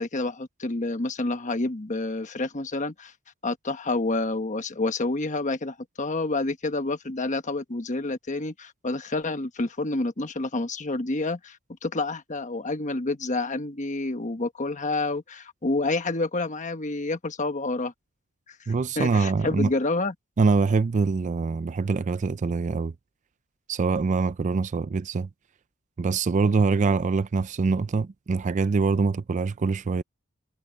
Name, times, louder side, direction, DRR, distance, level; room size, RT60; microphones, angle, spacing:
voice 1, 0.0-3.1 3.4-11.6 11.8-17.9 18.5-18.6 19.0-20.1, left 2 dB, 35° left, 1.2 m, -28 dB
voice 2, 18.7-19.7 20.4-22.9 23.7-25.3 26.0-30.0, right 4 dB, 35° right, 0.4 m, -24 dB
head